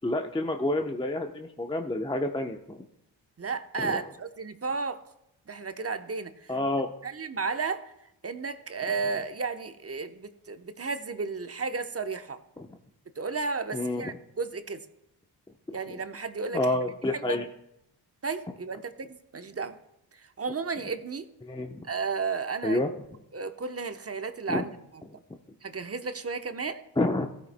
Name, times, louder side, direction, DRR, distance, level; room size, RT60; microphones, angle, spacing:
voice 1, 0.0-2.8 3.8-4.0 6.5-6.9 12.6-12.7 13.7-14.2 15.9-16.0 16.5-17.4 21.4-21.8 22.6-22.9 24.5-24.6 27.0-27.3, left 1 dB, 10° left, 4 dB, 0.8 m, -29 dB
voice 2, 3.4-5.0 5.5-6.5 7.0-7.8 8.2-12.4 13.2-14.8 15.7-16.7 17.1-17.4 18.2-19.8 20.4-21.3 21.9-22.8 23.3-24.7 25.6-26.8, right 4 dB, 30° right, 9 dB, 0.9 m, -33 dB
16.0 x 9.2 x 2.2 m, 0.82 s
hypercardioid pair, 40°, 49 cm